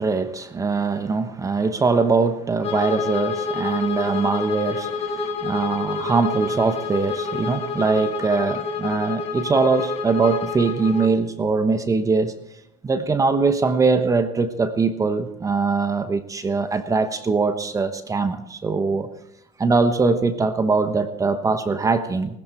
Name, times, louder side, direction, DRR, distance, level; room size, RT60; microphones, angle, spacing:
voice 1, 0.0-12.3 12.8-19.1 19.6-22.4, right 4 dB, 20° right, 10 dB, 1.1 m, -22 dB
Bowed string instrument, 2.6-11.2, left 5 dB, 45° left, 3.7 m, -28 dB
19.5 x 14.0 x 4.5 m, 0.83 s
supercardioid pair, 95°, 15 cm